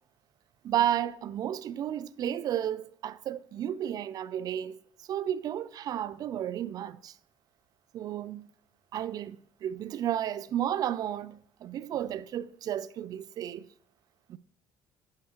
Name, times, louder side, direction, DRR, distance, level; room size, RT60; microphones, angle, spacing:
voice 1, 0.6-7.2 7.9-8.5 8.9-13.7 14.3-14.4, right 11 dB, 45° right, 0.3 m, -32 dB
11.5 x 4.9 x 2.9 m
cardioid pair, 135°, 9 cm